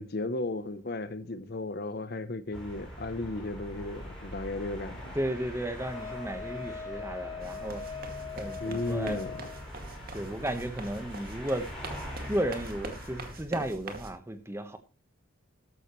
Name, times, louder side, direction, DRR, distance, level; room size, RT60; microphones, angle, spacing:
voice 1, 0.0-5.2 8.6-9.5, left 2 dB, 45° left, 0.7 m, -35 dB
sound 1, 2.5-13.3, equal, 5° left, 6.2 m, -43 dB
voice 2, 5.1-7.8 8.3-9.2 10.1-11.7 12.2-14.8, right 1 dB, 10° right, 1.1 m, -34 dB
Wind instrument woodwind instrument, 5.8-9.6, left 6 dB, 20° left, 6.0 m, -41 dB
sound 2, 7.4-14.1, right 2 dB, 45° right, 2.2 m, -43 dB
13.5 x 12.0 x 3.1 m
head